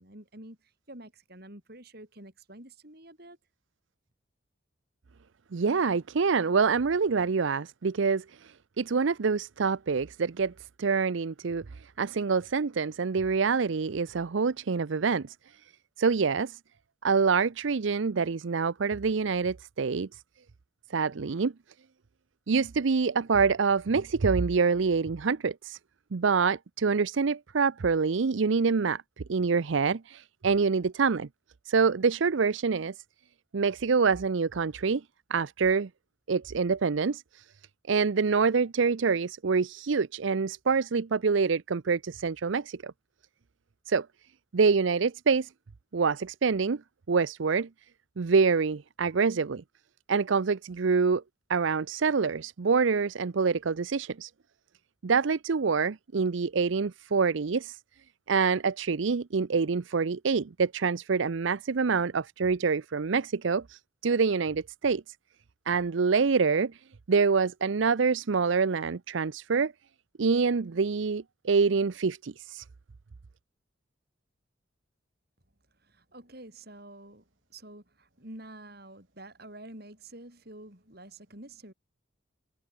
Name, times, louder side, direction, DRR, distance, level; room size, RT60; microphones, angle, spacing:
voice 1, 0.0-3.4 75.8-81.7, right 1 dB, 50° right, 6.0 m, -48 dB
voice 2, 5.5-10.5 10.8-15.3 16.0-16.6 17.0-20.2 20.9-21.5 22.5-25.8 26.1-29.0 29.3-31.3 31.7-32.9 33.5-35.0 35.3-35.9 36.3-37.4 37.9-42.9 43.9-44.1 44.5-45.5 45.9-46.8 47.1-47.7 48.2-49.6 50.1-51.2 51.5-54.3 55.0-57.8 58.3-65.0 65.7-66.8 67.1-69.7 70.2-72.6, right 5 dB, 70° right, 0.6 m, -26 dB
head